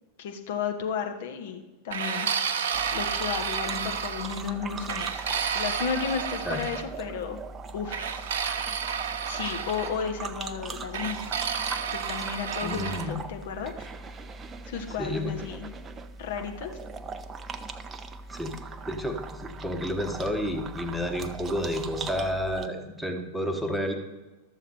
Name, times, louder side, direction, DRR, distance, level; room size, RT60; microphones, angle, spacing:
voice 1, 0.2-2.3 2.9-5.2 5.5-7.4 7.7-8.1 9.3-11.2 11.9-13.9 14.7-15.7 16.2-16.7, left 6 dB, 55° left, 4 dB, 1.1 m, -33 dB
sound 1, 1.9-4.4 4.9-6.8 7.9-9.9 10.9-13.1, right 7 dB, 60° right, 0.7 m, -31 dB
sound 2, 2.7-22.7, right 4 dB, 20° right, 0.5 m, -40 dB
voice 2, 12.6-13.2 14.9-15.3 18.3-18.5 18.8-23.9, equal, ahead, 3 dB, 1.1 m, -30 dB
12.5 x 7.1 x 4.4 m, 1.2 s
figure-of-eight pair, 90°, 0 cm